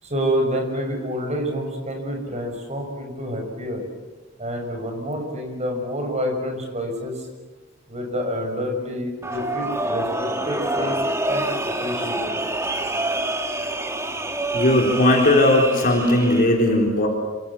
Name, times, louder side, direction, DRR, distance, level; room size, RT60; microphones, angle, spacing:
voice 1, 0.0-3.8 4.4-7.3 7.9-11.5 11.8-12.3, equal, 35° right, 3 dB, 6.6 m, -28 dB
sound 1, 9.2-16.5, right 1 dB, 15° right, 1.8 m, -27 dB
voice 2, 14.5-17.1, left 1 dB, 45° left, 0 dB, 4.1 m, -18 dB
27.5 x 25.5 x 7.4 m, 1.2 s
head